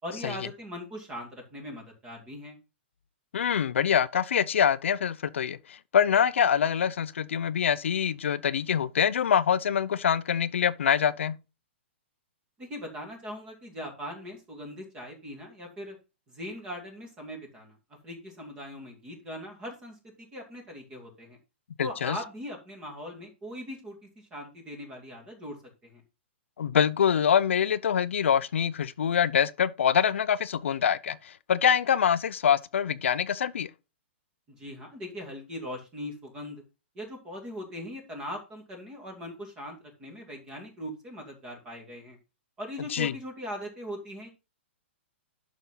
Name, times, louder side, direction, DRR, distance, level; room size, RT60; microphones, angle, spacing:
voice 1, 0.0-2.6 12.6-16.0 16.3-17.8 18.0-21.4 21.8-25.6 25.8-26.0 34.5-36.6 36.9-42.2 42.6-44.3, equal, 15° right, 2.6 m, -40 dB
voice 2, 3.3-11.4 21.8-22.2 26.6-33.7 42.9-43.1, left 8 dB, 80° left, 0.7 m, -25 dB
11.5 x 6.1 x 3.9 m
hypercardioid pair, 180°, 7 cm